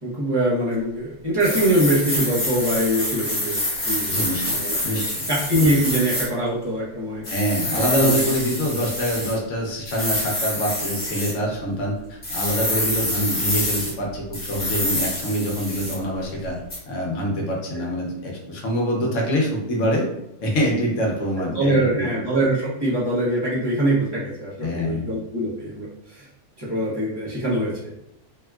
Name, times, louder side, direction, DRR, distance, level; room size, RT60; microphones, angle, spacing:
voice 1, 0.0-7.2 7.7-8.2 17.7-17.9 21.5-26.3 26.6-27.9, right 1 dB, 30° right, -7 dB, 0.4 m, -23 dB
sound 1, 1.4-6.3 7.2-9.3 9.8-11.3 12.2-13.9 14.3-16.0 16.7-16.8, left 1 dB, 40° left, 1.2 m, -26 dB
voice 2, 4.1-5.3 7.3-16.6 16.9-20.1 20.4-22.1 24.6-25.1, equal, 60° left, -1 dB, 1.0 m, -25 dB
3.5 x 2.3 x 2.3 m, 0.80 s
omnidirectional pair, 1.6 m